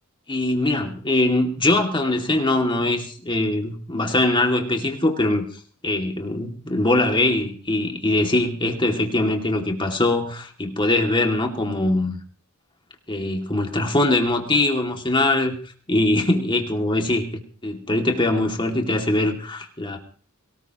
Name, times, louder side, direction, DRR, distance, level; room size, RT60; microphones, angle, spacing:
voice 1, 0.3-5.4 5.8-12.2 13.1-15.6 15.9-17.2 17.6-20.0, left 2 dB, 20° left, 3 dB, 2.4 m, -22 dB
22.5 x 19.0 x 3.0 m, 0.44 s
head